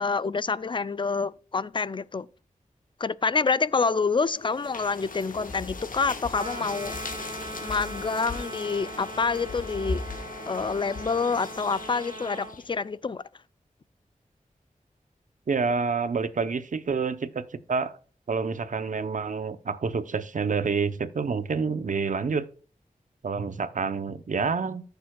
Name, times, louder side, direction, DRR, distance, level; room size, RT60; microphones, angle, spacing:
voice 1, 0.0-2.3 3.0-6.9 7.6-10.0 10.5-13.2, left 4 dB, 35° left, 0.4 m, -27 dB
sound 1, 4.3-12.7, left 3 dB, 75° left, 1.4 m, -38 dB
sound 2, 6.3-12.6, right 1 dB, 35° right, 2.9 m, -40 dB
voice 2, 15.5-18.0 18.3-22.5 23.2-24.8, right 5 dB, 65° right, 0.7 m, -28 dB
14.5 x 6.8 x 2.3 m
wide cardioid pair, 90°, 14 cm